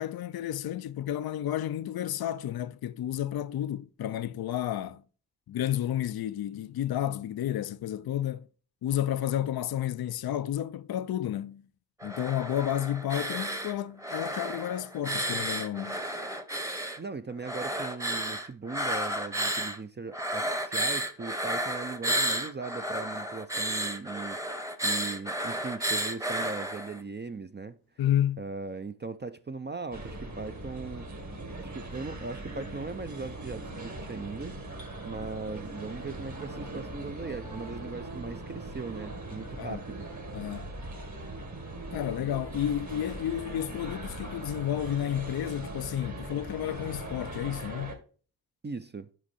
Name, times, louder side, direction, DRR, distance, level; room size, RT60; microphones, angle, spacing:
voice 1, 0.0-5.0 5.5-8.5 8.8-11.6 12.0-16.0 28.0-28.4 39.6-39.8 40.3-40.7 41.9-48.0, left 11 dB, 75° left, 0.5 m, -31 dB
sound 1, 12.0-13.7 14.0-17.0 17.4-19.8 20.1-27.0, right 1 dB, 10° right, 0.9 m, -32 dB
voice 2, 17.0-27.8 28.4-31.1 31.6-34.5 35.0-40.1 48.6-49.1, right 4 dB, 30° right, 0.5 m, -39 dB
sound 2, 29.9-47.9, right 2 dB, 50° right, 2.0 m, -40 dB
6.2 x 5.3 x 4.1 m
cardioid pair, 55°, 38 cm